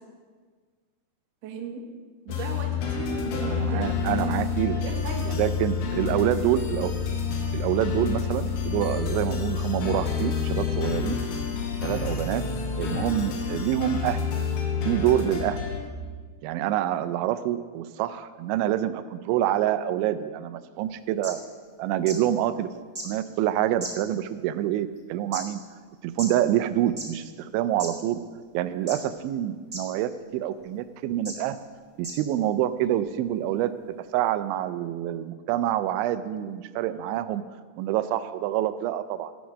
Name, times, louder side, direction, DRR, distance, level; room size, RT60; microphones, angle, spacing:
voice 1, 1.4-1.8 2.2-3.9 4.6-5.4, right 5 dB, 70° right, 1 dB, 1.6 m, -36 dB
sound 1, 2.3-15.8, left 6 dB, 85° left, 3.8 m, -28 dB
voice 2, 3.4-4.8 5.4-6.9 7.5-11.2 11.8-12.4 12.7-14.2 14.9-15.6 16.4-21.4 21.8-22.7 23.0-25.6 26.0-28.2 28.5-31.6 32.0-33.7 34.1-37.4 37.8-39.3, right 12 dB, 90° right, 12 dB, 3.0 m, -26 dB
sound 2, 20.9-21.0 21.2-21.3 22.1-22.2 22.9-23.1 23.8-24.3 25.0-25.4 26.2-26.3 26.9-27.1 27.8-27.9 28.9-29.2 29.7-29.8 30.6-30.7 31.2-31.3 32.0-32.2 33.0-33.1, right 2 dB, 25° right, 1.5 m, -35 dB
15.0 x 7.0 x 6.2 m, 1.5 s
omnidirectional pair, 5.2 m